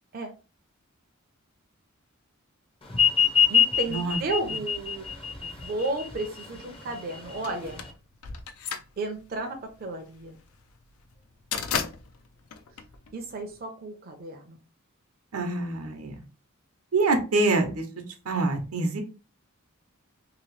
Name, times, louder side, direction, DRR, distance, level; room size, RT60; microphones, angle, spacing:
sound 1, 2.9-7.9, left 7 dB, 25° left, 0.6 m, -25 dB
voice 1, 3.5-7.8 9.0-10.4 13.1-14.6, right 2 dB, 45° right, 4 dB, 0.5 m, -33 dB
sound 2, 7.4-13.6, left 6 dB, 75° left, 0.4 m, -35 dB
voice 2, 15.3-16.1 16.9-17.8 18.3-19.0, right 3 dB, 80° right, 5 dB, 0.8 m, -25 dB
2.9 x 2.7 x 3.0 m, 0.33 s
head